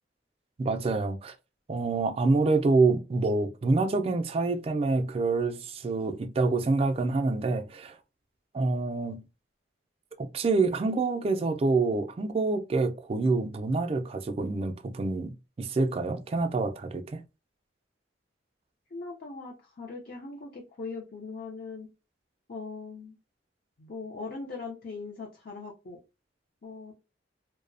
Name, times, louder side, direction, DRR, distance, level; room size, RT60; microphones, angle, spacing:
voice 1, 0.6-1.3 1.7-8.0 8.5-9.2 10.2-17.2, right 3 dB, 30° right, 0.3 m, -27 dB
voice 2, 18.9-21.9 22.5-23.2 23.8-26.0 26.6-26.9, left 4 dB, 55° left, 0.5 m, -40 dB
2.6 x 2.0 x 2.5 m
head